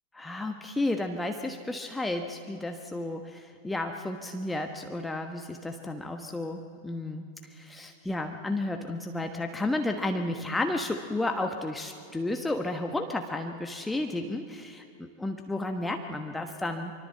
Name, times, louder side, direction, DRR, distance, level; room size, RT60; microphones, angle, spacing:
voice 1, 0.1-16.9, left 2 dB, 5° left, 5 dB, 1.2 m, -32 dB
24.5 x 24.5 x 7.9 m, 2.5 s
figure-of-eight pair, 90°, 0 cm